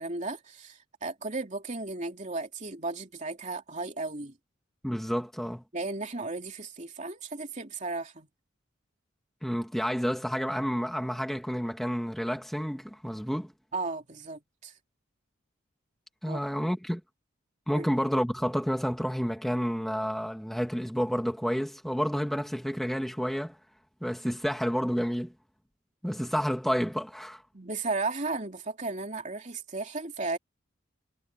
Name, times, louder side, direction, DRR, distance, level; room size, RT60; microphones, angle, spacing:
voice 1, 0.0-4.3 5.7-8.3 13.7-14.7 16.3-16.4 17.7-17.9 27.5-30.4, right 3 dB, 35° right, 3.0 m, -35 dB
voice 2, 4.8-5.6 9.4-13.5 16.2-17.0 17.7-23.6 24.0-25.3 26.0-27.4, equal, ahead, 2.0 m, -30 dB
head